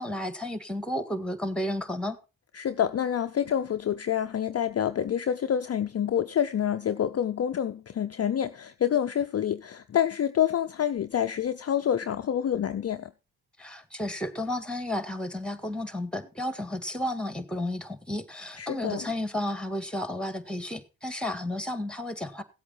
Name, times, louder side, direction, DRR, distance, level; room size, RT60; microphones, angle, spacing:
voice 1, 0.0-2.2 13.6-22.4, left 1 dB, ahead, 1.8 m, -32 dB
voice 2, 2.5-13.1 18.6-19.1, left 9 dB, 35° left, 0.6 m, -27 dB
16.0 x 8.4 x 4.0 m
hypercardioid pair, 50°, 41 cm